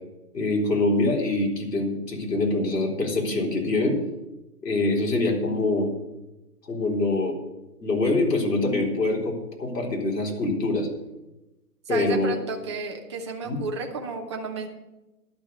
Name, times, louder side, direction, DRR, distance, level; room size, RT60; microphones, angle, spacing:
voice 1, 0.3-4.0 4.6-5.9 6.6-7.4 7.8-10.9 11.9-12.4 13.4-13.6, left 2 dB, 85° left, 0 dB, 3.9 m, -24 dB
voice 2, 11.9-14.7, right 4 dB, 20° right, 2 dB, 0.7 m, -32 dB
11.5 x 6.3 x 8.2 m, 0.99 s
hypercardioid pair, 155°, 48 cm